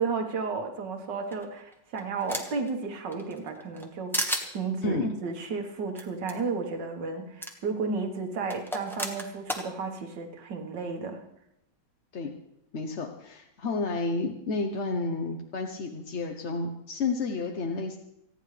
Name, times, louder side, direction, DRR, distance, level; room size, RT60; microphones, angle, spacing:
voice 1, 0.0-11.2, right 4 dB, 75° right, 4 dB, 2.1 m, -33 dB
sound 1, 1.3-2.7 3.1-3.9 4.1-4.5 5.9-6.0 6.3-6.4 7.4-7.5 8.5-9.6, equal, ahead, 1.3 m, -32 dB
voice 2, 12.7-18.0, left 3 dB, 45° left, 3 dB, 1.0 m, -31 dB
29.5 x 10.0 x 3.3 m, 0.80 s
omnidirectional pair, 1.9 m